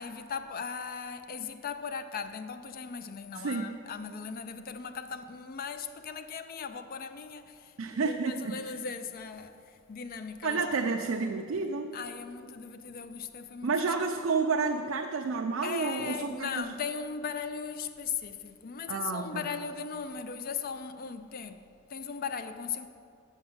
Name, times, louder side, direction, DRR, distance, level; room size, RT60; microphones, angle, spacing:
voice 1, 0.0-10.8 11.9-13.7 15.6-22.9, left 6 dB, 45° left, 0.4 m, -38 dB
voice 2, 3.4-3.7 7.8-8.6 10.4-11.9 13.6-16.7 18.9-19.4, right 4 dB, 65° right, 0.5 m, -30 dB
7.6 x 6.4 x 7.2 m
head